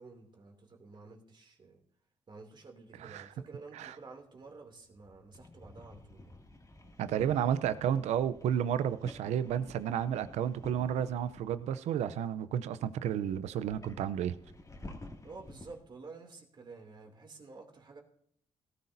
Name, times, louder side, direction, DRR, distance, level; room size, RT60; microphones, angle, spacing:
voice 1, 0.0-1.8 2.3-6.4 15.2-18.0, right 3 dB, 45° right, 2 dB, 2.8 m, -51 dB
sound 1, 4.4-11.7 12.5-12.6 13.3-15.8, left 2 dB, 30° left, 2.3 m, -51 dB
voice 2, 7.0-14.4, right 9 dB, 85° right, 14 dB, 0.6 m, -32 dB
18.0 x 13.0 x 2.7 m, 0.66 s
cardioid pair, 70°, 11 cm